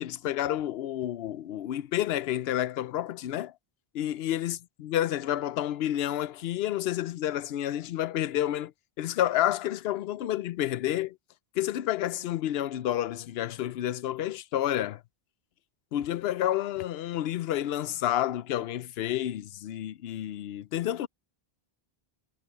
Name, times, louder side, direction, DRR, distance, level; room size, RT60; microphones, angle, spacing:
voice 1, 0.0-3.5 3.9-8.7 9.0-11.2 11.6-15.0 15.9-21.1, left 12 dB, 75° left, 0.8 m, -30 dB
omnidirectional pair, 1.0 m